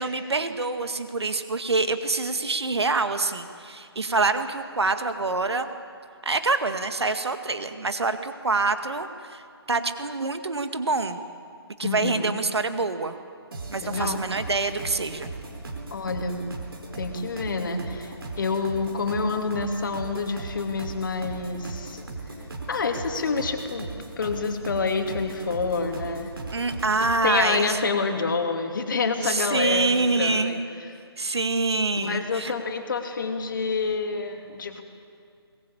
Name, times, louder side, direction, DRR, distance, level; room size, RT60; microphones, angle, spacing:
voice 1, 0.0-5.7 6.2-9.4 9.7-11.2 11.8-13.2 13.7-15.3 26.5-27.8 29.2-30.6 31.2-32.5, right 3 dB, 80° right, 9 dB, 1.9 m, -26 dB
voice 2, 11.8-12.4 13.8-14.2 15.9-16.4 16.9-22.0 22.7-23.9 24.2-26.3 27.2-30.6 32.0-34.8, left 4 dB, 50° left, 5 dB, 2.8 m, -28 dB
sound 1, 13.5-27.2, right 3 dB, 60° right, 4.3 m, -38 dB
22.5 x 20.5 x 8.6 m, 2.3 s
figure-of-eight pair, 160°, 14 cm